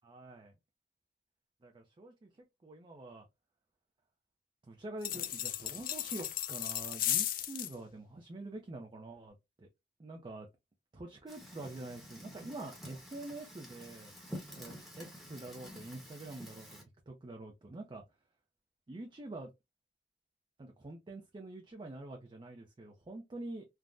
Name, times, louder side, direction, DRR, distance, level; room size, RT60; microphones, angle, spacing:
voice 1, 0.0-0.5 1.6-2.3 2.6-3.3 4.7-9.7 10.0-10.5 10.9-14.1 14.6-16.8 17.1-18.0 18.9-19.5 20.6-23.6, right 2 dB, 25° right, 0.4 m, -46 dB
sound 1, 5.0-7.7, left 12 dB, 50° left, 0.4 m, -35 dB
Fire, 11.3-16.8, equal, ahead, 0.9 m, -49 dB
3.4 x 2.0 x 2.4 m
head